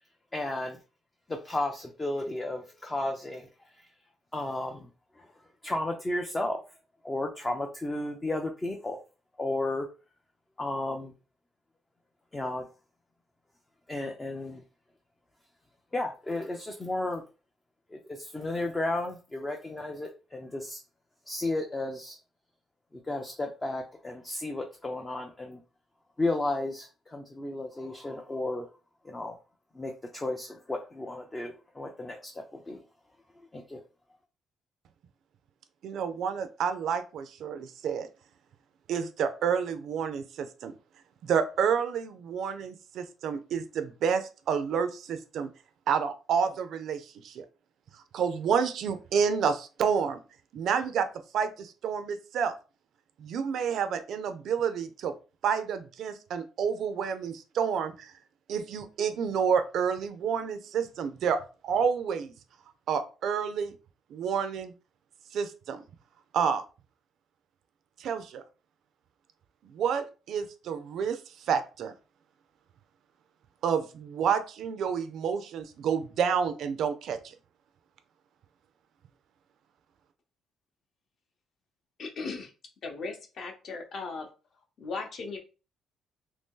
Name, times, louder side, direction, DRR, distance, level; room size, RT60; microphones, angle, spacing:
voice 1, 0.3-0.8 1.3-3.7 4.3-4.9 5.2-5.3 5.6-6.6 7.0-9.0 9.4-9.9 10.6-11.1 12.3-12.7 13.9-14.6 15.9-17.2 17.9-20.8 21.3-22.2 22.9-25.6 26.2-28.7 29.0-29.4 29.7-32.8 33.5-33.8, left 2 dB, 15° left, 2 dB, 0.4 m, -33 dB
voice 2, 35.8-38.1 38.9-40.7 41.2-45.5 45.9-47.4 48.1-50.2 50.5-51.1 51.3-52.5 53.2-55.1 55.4-58.1 58.5-62.3 62.9-63.7 64.1-64.7 65.3-65.8 66.3-66.6 68.0-68.4 69.7-71.2 71.5-71.9 73.6-77.2, right 7 dB, 55° right, 10 dB, 0.4 m, -29 dB
voice 3, 82.0-82.5 82.8-84.3 84.8-85.4, left 4 dB, 40° left, 4 dB, 0.7 m, -37 dB
2.9 x 2.7 x 3.6 m, 0.33 s
cardioid pair, 175°, 0 cm